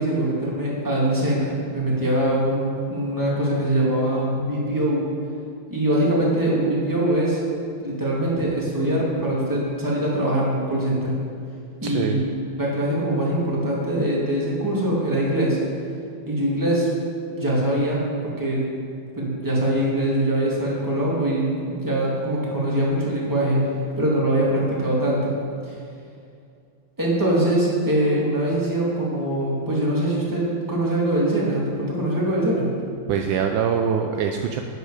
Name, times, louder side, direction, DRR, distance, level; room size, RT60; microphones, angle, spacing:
voice 1, 0.0-5.0 5.7-7.4 7.8-11.1 11.8-12.2 12.5-15.6 16.3-16.9 17.3-18.0 18.4-18.6 19.1-23.6 24.0-25.3 25.7-25.8 27.0-32.7, right 1 dB, 10° right, -5 dB, 2.4 m, -23 dB
voice 2, 11.8-12.2 33.1-34.6, right 7 dB, 75° right, 4 dB, 1.3 m, -23 dB
11.0 x 9.5 x 5.0 m, 2.3 s
omnidirectional pair, 2.2 m